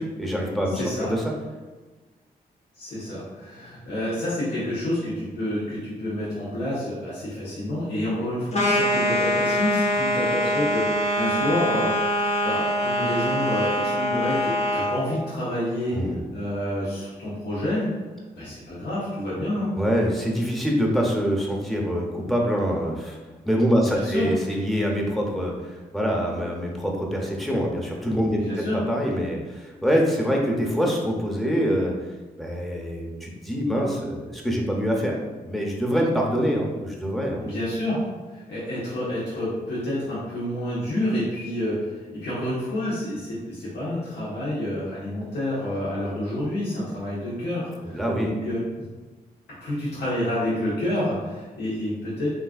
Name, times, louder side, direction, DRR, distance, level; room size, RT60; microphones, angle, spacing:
voice 1, 0.0-1.3 15.9-16.2 19.8-23.2 23.4-31.9 32.4-35.2 35.4-37.4 47.9-48.3, equal, ahead, -1 dB, 0.7 m, -25 dB
voice 2, 0.7-1.2 2.8-11.9 12.4-16.0 16.3-17.9 18.3-19.7 23.8-24.3 28.3-28.8 37.4-48.8 49.6-52.3, left 1 dB, 85° left, -9 dB, 0.9 m, -28 dB
sound 1, 8.5-15.0, left 1 dB, 40° left, 0.6 m, -24 dB
3.2 x 2.4 x 2.4 m, 1.3 s
cardioid pair, 50°, 17 cm